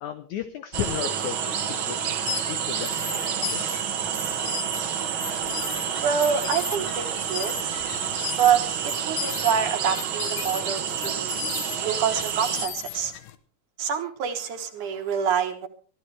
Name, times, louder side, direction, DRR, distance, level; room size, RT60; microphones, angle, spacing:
voice 1, 0.0-3.6, left 10 dB, 85° left, 10 dB, 1.7 m, -35 dB
sound 1, 0.7-12.7, right 8 dB, 85° right, 1.1 m, -29 dB
sound 2, 2.1-13.4, left 12 dB, 70° left, 2.3 m, -37 dB
voice 2, 6.0-7.5 8.4-11.3 11.8-13.1 13.8-15.7, right 7 dB, 65° right, 6 dB, 2.3 m, -26 dB
24.0 x 13.5 x 3.3 m, 0.40 s
omnidirectional pair, 4.5 m